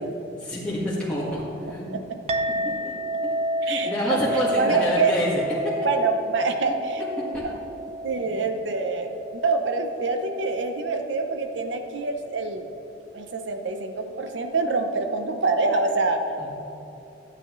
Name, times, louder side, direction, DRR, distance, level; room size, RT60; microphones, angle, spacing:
voice 1, 0.3-1.8 2.6-2.9 3.2-3.3 3.6-5.7 6.6-6.7 7.3-7.4 8.2-8.3 16.4-16.6, left 1 dB, 5° left, -9 dB, 1.7 m, -28 dB
Chink clink, 2.3-11.0, right 1 dB, 30° right, 0.5 m, -31 dB
voice 2, 3.6-4.2 4.6-5.1 5.8-7.0 7.4-7.6 8.0-12.7 13.1-16.2, right 3 dB, 70° right, 6 dB, 0.7 m, -26 dB
13.5 x 8.8 x 3.1 m, 2.9 s
head